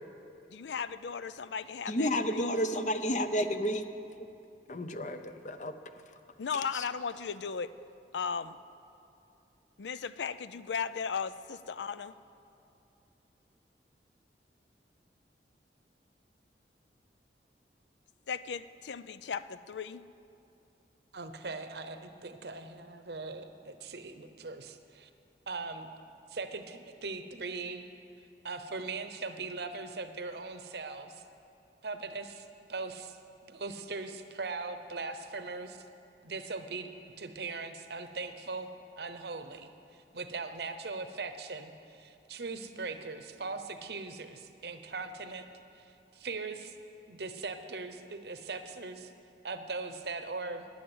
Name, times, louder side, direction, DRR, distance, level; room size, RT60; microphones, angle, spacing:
voice 1, 0.5-2.5 6.4-7.7 8.1-8.6 9.8-12.1 18.3-20.0, left 6 dB, 80° left, 14 dB, 0.5 m, -36 dB
voice 2, 1.9-3.8 4.7-5.7 6.7-6.8, equal, 40° left, 9 dB, 0.7 m, -31 dB
voice 3, 21.1-25.1 25.5-25.9 26.3-27.9 28.4-31.2 31.8-33.2 33.4-35.8 36.2-36.9 37.2-38.7 39.0-45.5 45.8-46.7 47.1-49.1 49.4-50.7, right 3 dB, 70° right, 8 dB, 0.9 m, -40 dB
12.0 x 10.0 x 7.9 m, 2.7 s
head